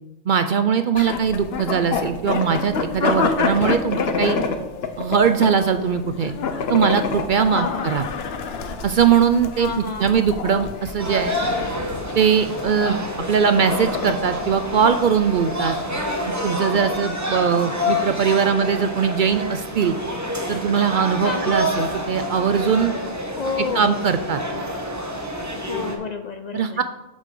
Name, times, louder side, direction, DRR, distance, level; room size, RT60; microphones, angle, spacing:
voice 1, 0.3-4.4 5.0-6.3 6.7-8.1 8.8-11.4 12.1-15.8 16.3-19.9 20.5-23.0 23.7-24.4 26.5-26.8, right 7 dB, 60° right, 9 dB, 0.6 m, -20 dB
sound 1, 1.0-16.3, left 5 dB, 65° left, 1.0 m, -28 dB
voice 2, 7.5-7.9 9.6-10.4 21.2-21.7 23.4-24.0 25.7-26.8, left 4 dB, 50° left, 8 dB, 0.5 m, -30 dB
sound 2, 11.0-25.9, left 1 dB, 15° right, 1.1 m, -28 dB
7.2 x 5.2 x 6.7 m, 1.0 s
omnidirectional pair, 1.1 m